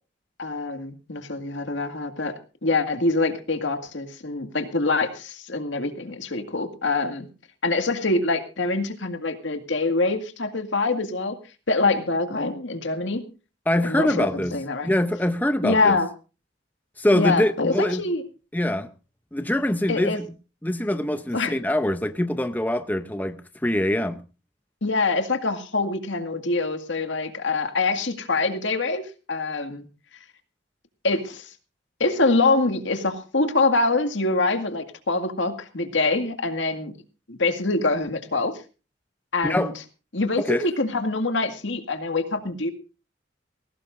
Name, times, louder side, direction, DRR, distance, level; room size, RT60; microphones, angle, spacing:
voice 1, 0.4-7.3 7.6-11.4 11.7-13.2 13.8-14.9 15.6-16.1 17.1-18.2 19.9-20.2 21.3-21.5 24.8-29.0 29.3-29.8 31.0-31.5 32.0-36.9 37.3-38.5 39.3-39.7 40.1-42.7, left 3 dB, 75° left, 2.1 m, -25 dB
voice 2, 13.7-14.6 14.8-16.0 17.0-18.0 18.5-18.9 19.3-20.2 20.6-24.2 39.4-39.7 40.4-40.6, left 1 dB, 10° left, 0.7 m, -24 dB
20.5 x 17.5 x 2.6 m
head